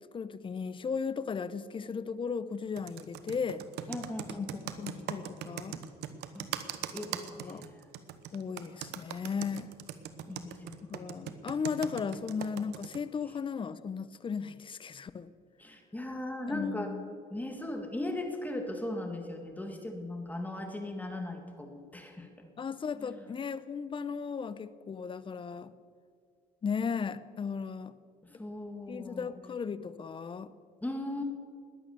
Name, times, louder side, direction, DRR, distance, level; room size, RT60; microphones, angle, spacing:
voice 1, 0.1-3.6 4.4-5.8 7.3-7.6 8.3-9.7 10.9-15.3 16.5-17.1 22.6-25.7 26.6-27.9 28.9-30.5, left 6 dB, 30° left, 15 dB, 0.7 m, -36 dB
Computer keyboard, 2.8-13.0, right 11 dB, 80° right, 1.1 m, -40 dB
voice 2, 3.9-4.6 6.3-6.5 6.9-7.6 10.3-11.2 15.6-16.9 17.3-22.3 23.0-23.2 28.2-29.3 30.8-31.2, left 1 dB, 10° left, 4 dB, 1.9 m, -38 dB
20.5 x 8.9 x 6.9 m, 2.1 s
cardioid pair, 110°, 17 cm